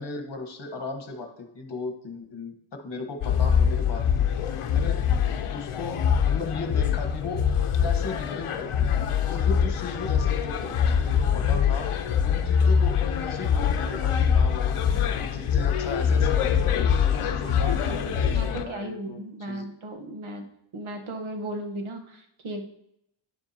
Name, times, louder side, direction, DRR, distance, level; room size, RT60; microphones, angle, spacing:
voice 1, 0.0-2.5 2.8-4.4 4.7-5.0 5.5-7.5 7.8-11.9 12.2-14.8 15.1-19.7, left 3 dB, 55° left, 5 dB, 1.3 m, -37 dB
sound 1, 3.2-18.6, left 7 dB, 85° left, 0.8 m, -24 dB
voice 2, 17.4-20.4 20.7-22.7, right 1 dB, 75° right, 4 dB, 1.2 m, -36 dB
9.8 x 7.2 x 2.8 m, 0.78 s
wide cardioid pair, 90°, 49 cm